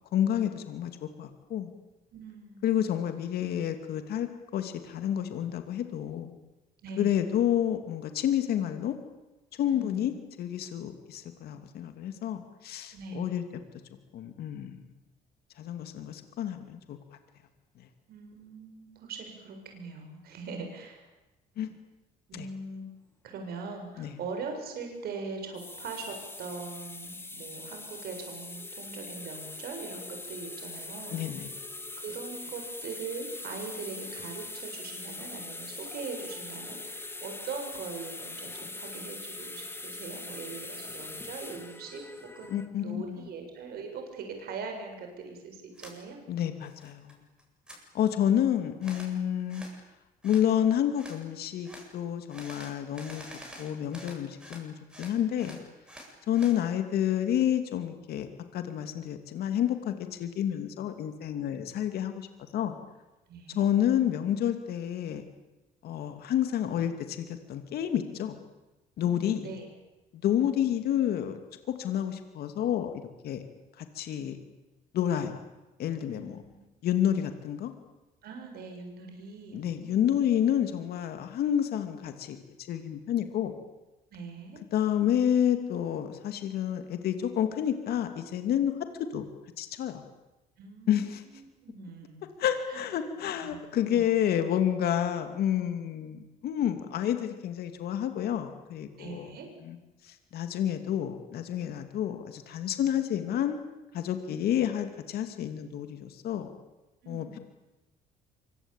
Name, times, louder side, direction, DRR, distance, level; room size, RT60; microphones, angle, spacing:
voice 1, 0.1-1.7 2.6-6.3 7.0-9.0 9.6-13.4 14.1-14.8 15.6-17.0 21.6-21.7 22.3-22.5 24.0-24.1 31.1-31.5 42.5-43.3 46.3-47.2 47.9-49.6 50.2-53.2 53.6-55.6 56.3-62.3 62.5-62.8 63.5-65.2 65.8-68.4 69.0-69.5 70.1-71.4 71.8-72.9 73.2-73.4 73.8-74.4 74.9-75.3 75.8-76.4 76.8-77.7 79.5-82.4 82.7-83.5 84.7-88.7 89.0-89.3 89.6-90.0 90.9-91.2 92.4-99.3 99.6-99.8 100.0-103.6 103.9-106.5 107.1-107.4, left 10 dB, 65° left, 7 dB, 2.7 m, -29 dB
voice 2, 2.1-2.6 6.8-7.2 9.6-10.2 12.9-13.3 18.1-21.1 22.3-22.9 23.2-31.2 32.0-46.2 61.5-61.7 63.3-63.7 69.0-69.7 70.4-70.8 76.0-76.7 78.2-80.2 84.1-84.6 90.6-92.2 92.7-92.8 93.4-93.6 93.9-94.1 99.0-99.5 107.0-107.4, right 4 dB, 65° right, 4 dB, 7.6 m, -41 dB
sound 1, 25.4-42.7, left 2 dB, 15° left, 2.3 m, -42 dB
sound 2, 45.8-46.0 46.4-47.1 47.4-47.8 48.8-49.1 49.5-49.8 50.2-50.5 51.0-51.2 51.7-51.9 52.3-54.6 54.9-56.6, equal, 5° right, 7.9 m, -47 dB
25.0 x 24.0 x 9.1 m, 1.1 s
cardioid pair, 110°, 17 cm